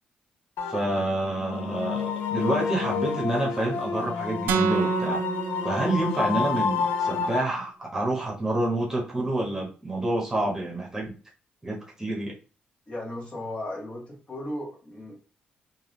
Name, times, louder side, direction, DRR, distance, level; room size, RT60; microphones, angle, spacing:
sound 1, 0.6-7.4, left 6 dB, 85° left, 0.5 m, -29 dB
voice 1, 0.7-5.2 5.6-11.1 11.6-12.3, right 1 dB, 15° right, -2 dB, 1.2 m, -28 dB
sound 2, 4.5-6.6, right 6 dB, 80° right, 0.5 m, -28 dB
voice 2, 12.9-15.2, left 1 dB, 30° left, -2 dB, 1.4 m, -36 dB
3.5 x 2.5 x 3.2 m, 0.36 s
cardioid pair, 105°, 3 cm